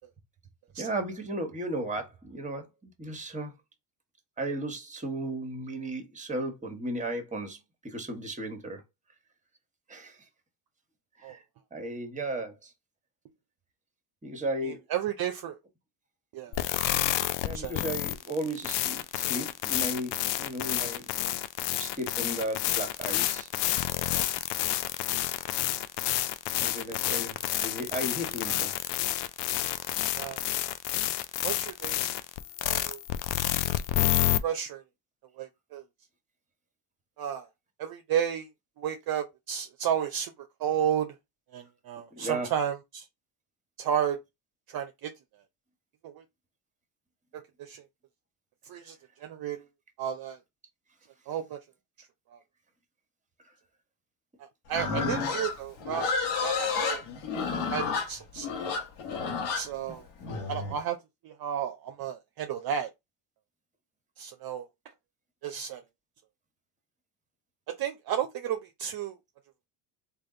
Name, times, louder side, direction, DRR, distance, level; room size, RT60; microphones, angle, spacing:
voice 1, 0.8-3.5 4.4-7.6 7.8-8.8 9.9-10.1 11.2-11.4 11.7-12.7 14.2-14.8 17.4-21.1 21.8-23.5 24.1-24.3 26.6-27.3 27.6-28.7 42.1-42.5 54.9-55.3, right 1 dB, 15° right, 1.2 m, -35 dB
voice 2, 14.6-15.6 16.3-16.6 17.5-17.8 26.7-26.8 27.1-27.2 30.2-30.4 31.4-32.1 32.6-33.0 34.4-34.8 35.4-35.8 37.2-37.5 37.8-38.5 38.8-40.3 40.6-41.1 41.5-43.0 43.8-44.2 44.7-45.1 46.0-46.2 47.6-47.8 48.6-49.6 50.0-50.4 51.3-51.6 52.3-52.4 54.4-56.1 56.4-57.0 57.7-58.8 59.5-60.0 60.5-61.0 61.2-62.9 64.2-64.7 65.4-65.8 67.8-69.2, right 9 dB, 45° right, 0.6 m, -32 dB
sound 1, 16.5-34.4, left 14 dB, 60° left, 0.5 m, -29 dB
Livestock farm animals working animals, 54.7-60.8, left 5 dB, 90° left, 1.2 m, -31 dB
3.3 x 2.5 x 3.8 m
supercardioid pair, 90°, 50 cm